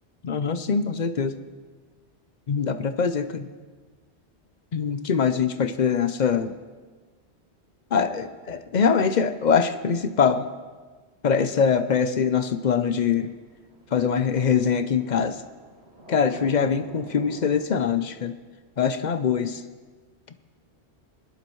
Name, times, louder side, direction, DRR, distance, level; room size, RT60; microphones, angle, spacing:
voice 1, 0.2-1.4 2.5-3.5 4.7-6.5 7.9-10.5 11.2-13.3 13.9-15.4 16.1-18.3 18.8-19.6, left 6 dB, 50° left, 10 dB, 0.6 m, -23 dB
sound 1, 12.6-17.6, right 1 dB, 65° right, 2.3 m, -45 dB
21.0 x 11.0 x 3.1 m, 1.4 s
omnidirectional pair, 1.2 m